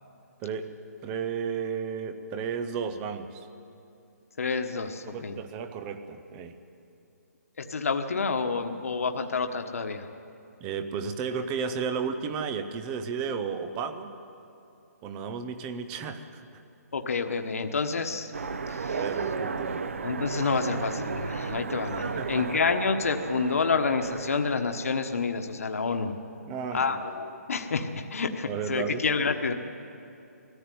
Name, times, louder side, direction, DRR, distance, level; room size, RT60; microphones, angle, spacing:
voice 1, 0.4-0.7 1.0-3.5 5.1-6.6 10.6-14.1 15.0-16.6 18.8-19.8 22.2-22.6 26.5-27.0 28.5-29.0, right 6 dB, 10° right, 9 dB, 0.4 m, -33 dB
voice 2, 4.4-5.4 7.6-10.1 16.9-18.3 18.7-19.0 20.0-26.1 26.7-29.5, left 4 dB, 60° left, 5 dB, 1.3 m, -28 dB
Train, 18.3-25.3, right 5 dB, 50° right, 0.8 m, -34 dB
20.5 x 14.5 x 9.2 m, 2.7 s
hypercardioid pair, 175°, 9 cm